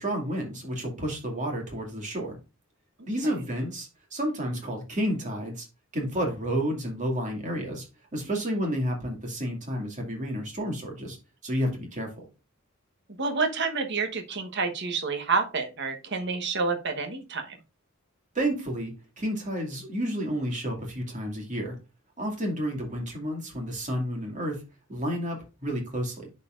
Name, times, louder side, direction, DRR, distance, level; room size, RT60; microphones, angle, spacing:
voice 1, 0.0-2.4 3.1-5.7 5.9-7.9 8.1-11.2 11.4-12.1 18.3-21.8 22.2-24.6 24.9-26.3, equal, 35° right, 1 dB, 2.2 m, -30 dB
voice 2, 3.0-3.3 13.1-17.6, right 4 dB, 60° right, 6 dB, 1.2 m, -29 dB
11.5 x 4.2 x 2.5 m, 0.29 s
head